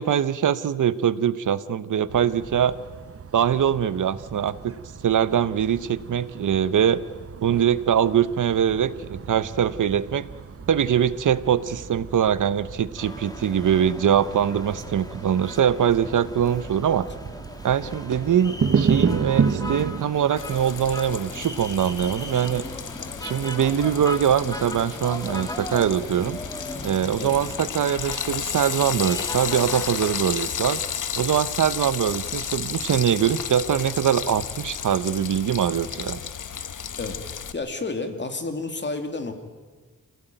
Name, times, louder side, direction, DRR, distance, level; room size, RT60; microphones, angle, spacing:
voice 1, 0.0-2.8 3.3-4.7 5.0-7.0 7.4-10.3 10.7-17.1 17.6-22.6 23.2-26.4 26.8-30.8 31.2-36.2, right 9 dB, 70° right, 15 dB, 0.9 m, -23 dB
sound 1, 2.1-20.0, right 6 dB, 45° right, 1.0 m, -31 dB
sound 2, 13.0-30.1, left 1 dB, 10° left, 1.6 m, -38 dB
Frying (food), 20.4-37.5, left 8 dB, 70° left, 1.2 m, -33 dB
voice 2, 37.0-39.3, left 3 dB, 35° left, 6 dB, 2.5 m, -31 dB
27.0 x 17.0 x 9.2 m, 1.5 s
wide cardioid pair, 130°, 32 cm